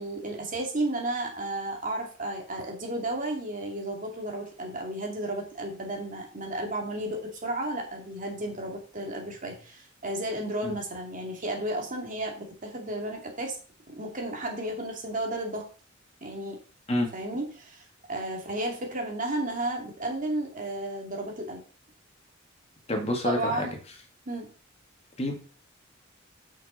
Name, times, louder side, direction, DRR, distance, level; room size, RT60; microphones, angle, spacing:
voice 1, 0.0-13.6 13.9-15.7 16.2-16.6 17.1-17.8 18.1-21.6 23.2-23.7 24.3-24.5, right 1 dB, 40° right, 1 dB, 2.5 m, -33 dB
voice 2, 22.9-23.7 25.2-25.3, left 1 dB, 30° left, 3 dB, 1.9 m, -27 dB
6.2 x 6.0 x 5.6 m, 0.39 s
head